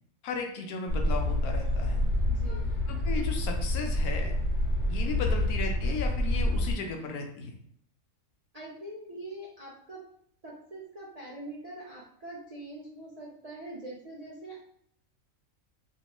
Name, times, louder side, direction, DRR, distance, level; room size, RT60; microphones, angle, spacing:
voice 1, 0.2-2.0 2.9-4.3 4.9-7.5, left 4 dB, 85° left, 3 dB, 1.1 m, -35 dB
sound 1, 0.9-6.7, left 1 dB, 55° left, 1.1 m, -28 dB
voice 2, 2.3-2.7 5.1-5.2 8.5-10.0 10.4-14.6, right 1 dB, 55° right, -6 dB, 0.4 m, -43 dB
3.1 x 3.0 x 2.9 m, 0.67 s
omnidirectional pair, 1.5 m